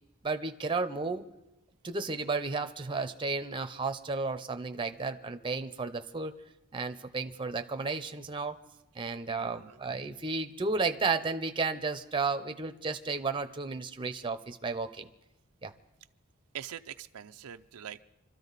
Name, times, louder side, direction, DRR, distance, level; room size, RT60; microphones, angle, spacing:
voice 1, 0.2-1.3 1.8-6.3 6.7-8.6 8.9-15.1 15.6-15.7, right 4 dB, 25° right, 7 dB, 0.7 m, -33 dB
voice 2, 9.4-9.8 16.5-18.0, right 9 dB, 90° right, 9 dB, 0.5 m, -43 dB
25.5 x 13.0 x 4.1 m, 0.96 s
head